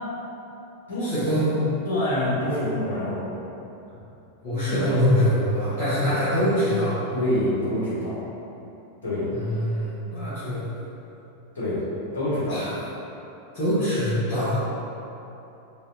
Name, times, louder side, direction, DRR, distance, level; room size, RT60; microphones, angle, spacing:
voice 1, 1.0-1.6 4.4-6.9 9.3-10.6 12.5-12.7 13.5-14.5, equal, 45° left, -15 dB, 1.4 m, -24 dB
voice 2, 1.8-3.2 4.7-4.9 6.1-6.2 7.1-8.2 9.0-9.3 11.5-11.8 12.1-12.6, left 1 dB, 70° left, -10 dB, 1.5 m, -26 dB
4.8 x 2.6 x 2.8 m, 3.0 s
figure-of-eight pair, 90°, 0 cm